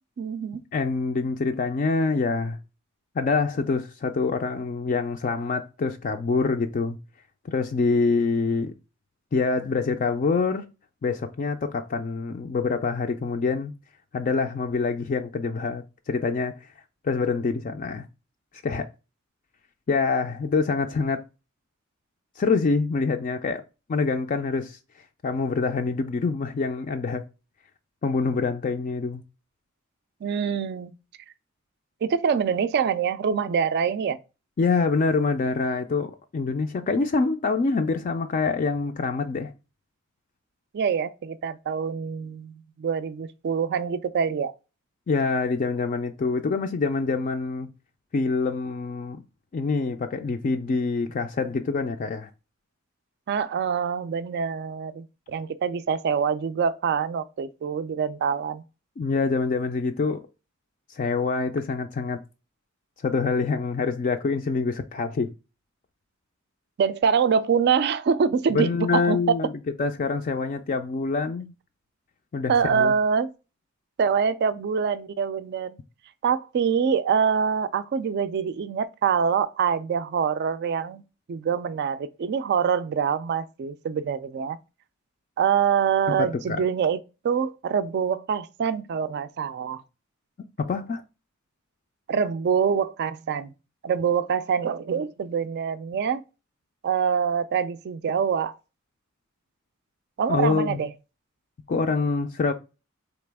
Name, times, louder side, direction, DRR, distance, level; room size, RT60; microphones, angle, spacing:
voice 1, 0.2-0.6 30.2-31.0 32.0-34.2 40.7-44.5 53.3-58.6 66.8-69.4 72.5-73.3 74.0-75.8 76.2-81.0 81.3-84.6 85.4-87.0 87.2-89.8 92.1-93.5 93.8-96.2 96.8-98.5 100.2-100.9, right 6 dB, 50° right, 0.3 m, -25 dB
voice 2, 0.7-2.6 3.2-7.0 7.4-8.7 9.3-10.7 11.0-13.7 14.1-16.6 17.0-18.1 18.6-18.9 19.9-21.2 22.4-23.6 23.9-24.8 25.2-27.2 28.0-29.2 34.6-39.5 45.1-47.7 48.1-49.2 49.5-52.3 59.0-60.2 60.9-62.2 63.0-65.3 68.5-69.5 69.8-71.5 72.3-72.9 86.2-86.6 90.6-91.0 100.3-100.8 101.7-102.5, left 4 dB, 40° left, 0.3 m, -25 dB
4.1 x 2.9 x 3.3 m
head